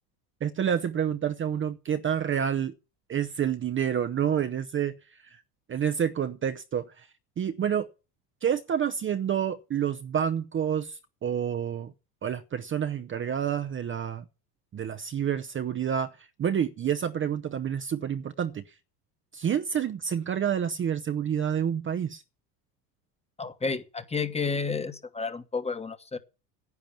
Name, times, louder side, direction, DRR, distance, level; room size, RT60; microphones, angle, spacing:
voice 1, 0.4-2.7 3.1-5.0 5.3-5.4 5.7-7.1 7.4-7.9 8.4-11.9 12.2-14.2 14.7-16.1 16.4-18.6 19.3-22.2, right 8 dB, 25° right, 0.7 m, -28 dB
voice 2, 23.4-26.2, left 4 dB, 15° left, 1.2 m, -31 dB
10.5 x 8.9 x 7.1 m
hypercardioid pair, 90°, 47 cm